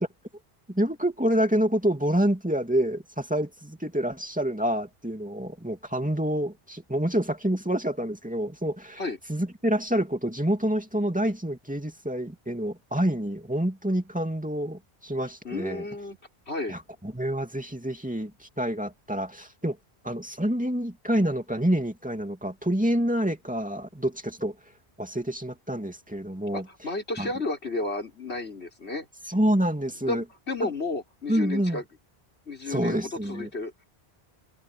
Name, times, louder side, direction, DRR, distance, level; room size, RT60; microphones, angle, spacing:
voice 1, 0.7-9.0 9.3-15.8 16.7-19.8 20.0-24.5 25.0-26.7 27.2-27.3 29.3-30.2 30.6-30.7 31.3-31.8 32.7-33.5, right 1 dB, 5° right, 2.6 m, -27 dB
voice 2, 15.4-16.2 16.5-16.8 26.5-29.1 30.0-31.8 32.5-33.9, left 2 dB, 85° left, 5.0 m, -32 dB
omnidirectional pair, 1.1 m